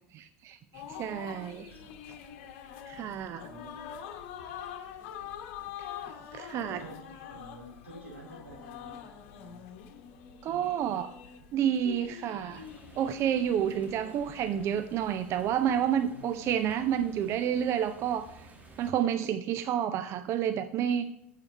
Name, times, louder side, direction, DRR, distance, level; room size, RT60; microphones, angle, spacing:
voice 1, 0.1-1.7 2.9-3.5 5.8-5.9 6.3-6.8 10.4-11.1 11.5-12.6 13.0-18.5 18.8-21.1, right 9 dB, 40° right, 11 dB, 0.5 m, -30 dB
sound 1, 0.7-15.7, left 9 dB, 55° left, 1.1 m, -45 dB
voice 2, 1.2-2.0 3.3-4.2 5.2-5.7 6.5-9.6 16.0-16.8, equal, 85° right, -2 dB, 3.8 m, -50 dB
sound 2, 12.5-18.9, right 3 dB, 20° right, 1.7 m, -54 dB
8.8 x 7.5 x 4.4 m, 0.87 s
figure-of-eight pair, 75°, 7 cm